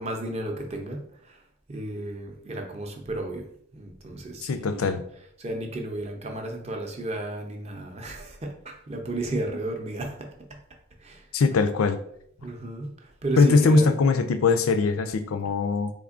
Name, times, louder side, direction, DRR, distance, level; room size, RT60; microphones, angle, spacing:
voice 1, 0.0-1.4 1.7-4.8 5.4-10.6 11.0-11.3 12.4-13.9, right 1 dB, 30° right, 3 dB, 0.5 m, -33 dB
voice 2, 4.4-5.0 11.3-12.0 13.4-15.9, left 4 dB, 90° left, 10 dB, 0.4 m, -21 dB
3.5 x 3.5 x 2.4 m, 0.68 s
head